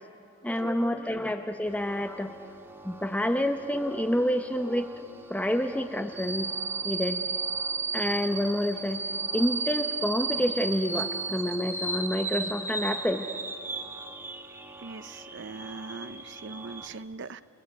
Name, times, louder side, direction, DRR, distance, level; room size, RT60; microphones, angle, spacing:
voice 1, 0.4-2.3 2.8-5.0 5.3-6.5 6.8-7.2 7.9-9.0 9.3-13.3, left 1 dB, 5° left, 7 dB, 0.8 m, -28 dB
sound 1, 1.7-16.9, right 4 dB, 10° right, 1.6 m, -35 dB
voice 2, 14.8-17.4, right 4 dB, 60° right, 14 dB, 0.8 m, -41 dB
29.5 x 19.5 x 9.6 m, 2.7 s
head